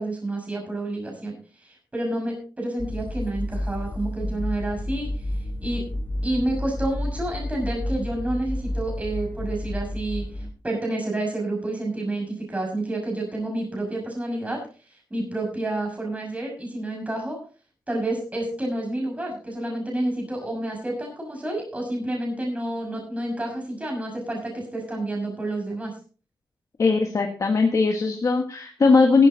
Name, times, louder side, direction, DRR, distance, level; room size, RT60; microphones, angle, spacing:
voice 1, 0.0-5.1 5.6-5.8 6.2-14.6 14.9-17.4 17.9-25.9, right 1 dB, 20° right, 0 dB, 6.2 m, -29 dB
sound 1, 2.8-10.5, left 1 dB, 20° left, 1.7 m, -30 dB
voice 2, 26.8-29.3, left 4 dB, 50° left, 2 dB, 1.7 m, -19 dB
15.5 x 13.5 x 2.9 m, 0.37 s
wide cardioid pair, 95°, 7 cm